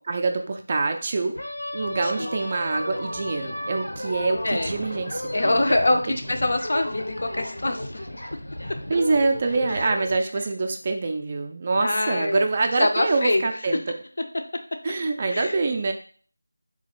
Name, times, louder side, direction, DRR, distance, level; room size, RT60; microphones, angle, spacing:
voice 1, 0.0-1.4 1.7-6.2 8.9-14.0 14.8-15.9, right 3 dB, 25° right, 5 dB, 0.3 m, -25 dB
sound 1, 1.3-10.2, left 1 dB, 90° left, 0.9 m, -34 dB
voice 2, 2.0-2.4 4.4-4.7 5.3-8.2 9.7-9.8 11.8-12.5 12.8-13.5 15.3-15.6, left 2 dB, 55° left, 6 dB, 0.5 m, -24 dB
3.8 x 2.5 x 2.9 m, 0.43 s
figure-of-eight pair, 170°, 0 cm